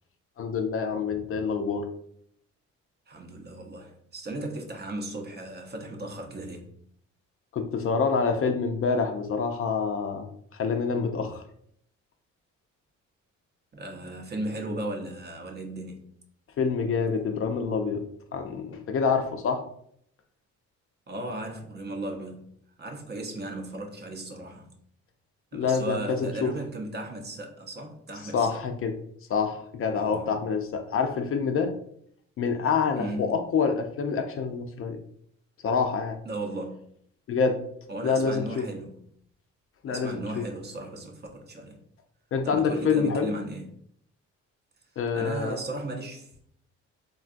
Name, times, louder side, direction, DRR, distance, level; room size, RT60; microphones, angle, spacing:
voice 1, 0.4-1.9 7.5-10.3 10.5-11.4 16.6-18.0 18.3-19.6 25.5-26.5 28.2-29.0 29.3-31.7 32.4-35.0 35.6-36.2 37.3-37.6 38.0-38.6 39.8-40.4 42.3-43.3 45.0-45.6, left 5 dB, 45° left, 0.4 m, -27 dB
voice 2, 3.1-6.7 13.7-16.0 21.1-22.5 22.8-24.7 25.5-28.6 29.9-30.3 33.0-33.3 36.2-36.8 37.9-39.0 39.9-41.8 42.4-43.7 45.1-46.3, right 1 dB, 35° right, 0.6 m, -36 dB
3.6 x 2.2 x 2.4 m
cardioid pair, 90°, 30 cm